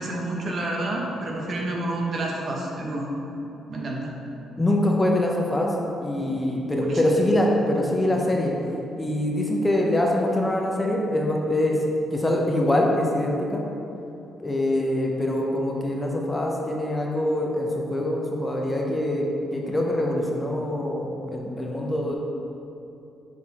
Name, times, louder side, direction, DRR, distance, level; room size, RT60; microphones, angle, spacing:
voice 1, 0.0-3.1 3.7-4.1 6.2-6.4 6.8-7.0, right 2 dB, 50° right, -1 dB, 1.1 m, -29 dB
voice 2, 4.6-5.7 6.0-8.5 9.0-11.8 12.1-13.6 14.4-19.3 19.5-22.2, left 1 dB, 15° left, -1 dB, 0.8 m, -24 dB
6.4 x 4.4 x 4.3 m, 2.9 s
cardioid pair, 90°, 0 cm